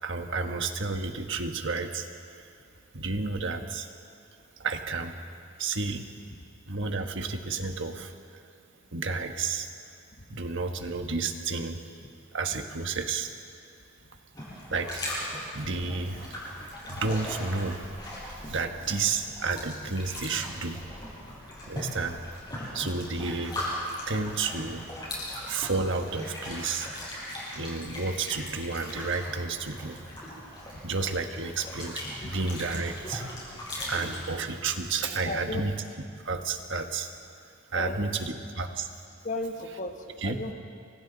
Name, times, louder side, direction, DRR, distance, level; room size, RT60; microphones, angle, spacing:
voice 1, 0.0-2.5 2.9-3.9 4.6-5.1 5.6-6.1 6.7-8.4 8.9-9.7 10.3-11.8 12.3-13.3 14.7-16.3 16.6-20.8 21.7-22.2 22.7-23.6 24.1-24.8 25.5-26.9 27.5-30.0 30.8-33.2 33.9-35.7 36.2-37.1 37.7-38.9 40.2-40.4, right 4 dB, 55° right, 5 dB, 1.5 m, -31 dB
sound 1, 14.3-34.3, left 1 dB, 20° left, 7.1 m, -39 dB
voice 2, 35.2-35.7 37.7-38.1 39.2-40.5, left 2 dB, 35° left, 5 dB, 1.2 m, -34 dB
29.5 x 24.5 x 4.1 m, 2.4 s
head